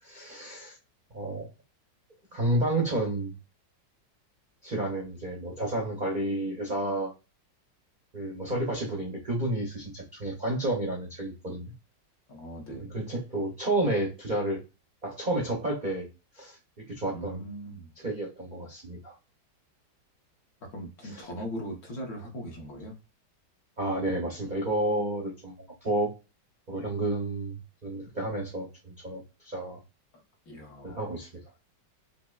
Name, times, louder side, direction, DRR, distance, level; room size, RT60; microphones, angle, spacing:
voice 1, 0.0-0.8 1.1-1.5 2.3-3.3 4.6-7.1 8.1-11.7 12.9-14.6 15.0-16.1 16.3-16.6 16.9-17.4 18.0-19.1 23.8-25.6 25.8-26.1 26.7-29.8 30.8-31.3, right 1 dB, 45° right, -2 dB, 0.6 m, -30 dB
voice 2, 12.3-13.0 17.1-17.9 20.7-23.0 30.4-31.1, equal, 60° left, 0 dB, 1.4 m, -39 dB
5.6 x 2.1 x 2.3 m, 0.29 s
omnidirectional pair, 2.0 m